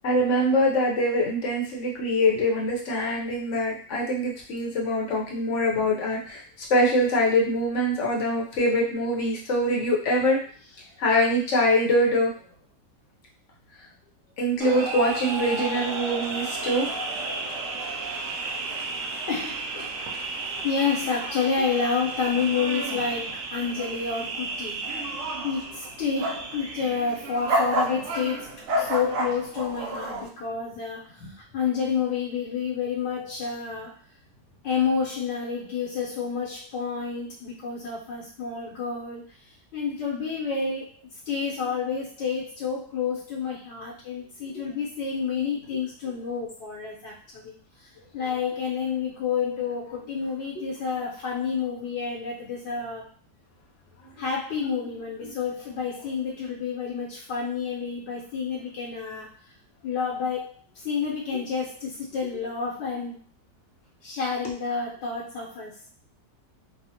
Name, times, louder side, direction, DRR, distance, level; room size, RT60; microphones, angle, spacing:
voice 1, 0.0-6.4 6.7-10.4 11.0-12.3 14.4-16.9 50.6-50.7, equal, 55° left, -2 dB, 0.9 m, -24 dB
sound 1, 14.6-30.3, right 2 dB, 80° right, 0.6 m, -31 dB
voice 2, 18.6-20.3 20.6-24.9 25.4-33.9 34.6-39.2 39.7-47.5 47.8-47.9 48.1-53.1 54.2-59.3 59.8-63.2 64.0-65.8, left 6 dB, 90° left, -5 dB, 1.5 m, -29 dB
3.4 x 2.1 x 2.7 m, 0.43 s
omnidirectional pair, 1.9 m